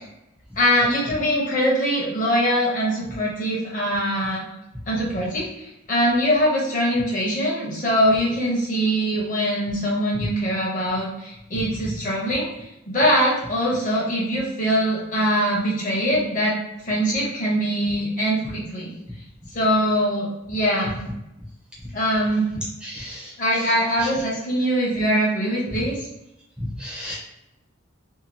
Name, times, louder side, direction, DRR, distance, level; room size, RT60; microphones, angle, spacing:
voice 1, 0.6-4.5 4.9-16.6 16.8-18.9 19.5-21.0 21.9-22.5 23.4-26.1, equal, 40° left, -4 dB, 0.9 m, -22 dB
voice 2, 22.8-23.7 24.0-24.1 26.6-27.1, left 1 dB, 5° right, -6 dB, 0.6 m, -33 dB
2.8 x 2.3 x 2.6 m, 0.88 s
head